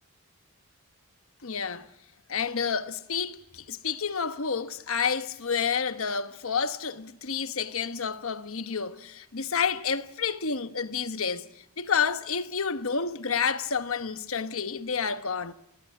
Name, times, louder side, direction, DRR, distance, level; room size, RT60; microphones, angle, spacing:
voice 1, 1.4-1.9 2.3-11.5 11.8-15.5, left 6 dB, 65° left, 1.1 m, -29 dB
20.5 x 18.5 x 9.5 m
head